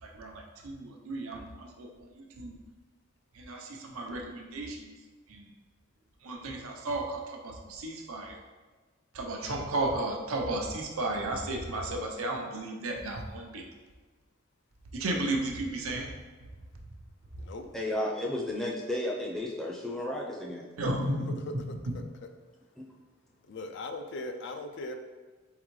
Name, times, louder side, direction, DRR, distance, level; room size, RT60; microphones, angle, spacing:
voice 1, 0.0-2.5 3.3-4.9 5.3-5.4 6.2-8.4 9.1-13.6 14.9-16.1 20.8-21.4, right 2 dB, 90° right, 1 dB, 0.7 m, -34 dB
voice 2, 17.7-20.7 22.8-22.9, left 1 dB, 5° left, -3 dB, 0.5 m, -33 dB
voice 3, 23.5-24.9, left 2 dB, 55° left, 6 dB, 0.4 m, -39 dB
4.2 x 3.8 x 3.1 m, 1.3 s
head